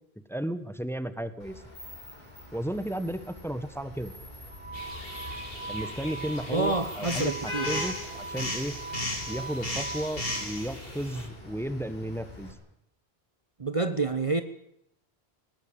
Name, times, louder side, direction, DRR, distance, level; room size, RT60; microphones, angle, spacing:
voice 1, 0.3-1.6 2.5-4.1 5.7-8.8 9.3-12.6, right 1 dB, ahead, 12 dB, 1.3 m, -34 dB
Vehicle horn car horn honking / Traffic noise roadway noise, 1.4-12.5, left 1 dB, 45° left, 4.7 m, -43 dB
sound 1, 4.5-10.4, right 3 dB, 55° right, 1.7 m, -41 dB
sound 2, 4.7-11.3, left 1 dB, 65° left, 4.6 m, -37 dB
voice 2, 6.5-7.7 13.6-14.4, right 3 dB, 35° right, 11 dB, 0.9 m, -28 dB
19.5 x 18.0 x 8.9 m, 0.76 s
omnidirectional pair, 1.1 m